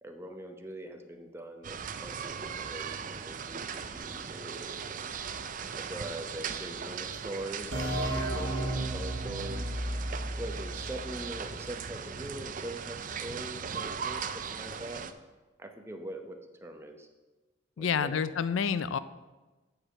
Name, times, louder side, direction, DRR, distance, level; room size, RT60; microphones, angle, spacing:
voice 1, 0.0-4.8 5.7-9.7 10.4-15.0 15.6-17.1 17.8-18.2, right 1 dB, 15° right, 5 dB, 0.8 m, -42 dB
sound 1, 1.6-15.1, right 6 dB, 40° right, 0.5 m, -39 dB
sound 2, 7.7-11.3, right 1 dB, 65° right, 1.8 m, -33 dB
voice 2, 17.8-19.0, left 6 dB, 70° left, 14 dB, 0.4 m, -28 dB
8.7 x 5.0 x 7.4 m, 1.2 s
head